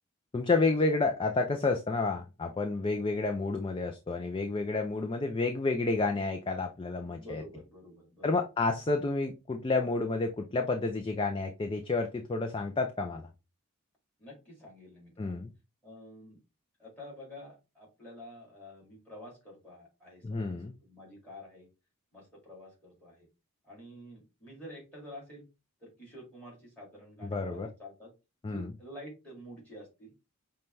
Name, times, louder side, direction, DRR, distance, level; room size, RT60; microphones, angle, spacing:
voice 1, 0.3-7.4 8.2-13.3 15.2-15.5 20.2-20.7 27.2-27.7 28.4-28.7, left 3 dB, 25° left, 4 dB, 0.3 m, -30 dB
voice 2, 7.0-8.4 14.2-15.4 15.8-16.4 16.8-21.7 22.1-23.3 23.6-25.4 25.8-28.1 28.4-30.1, equal, 5° left, -3 dB, 2.2 m, -49 dB
5.4 x 2.2 x 3.1 m, 0.27 s
head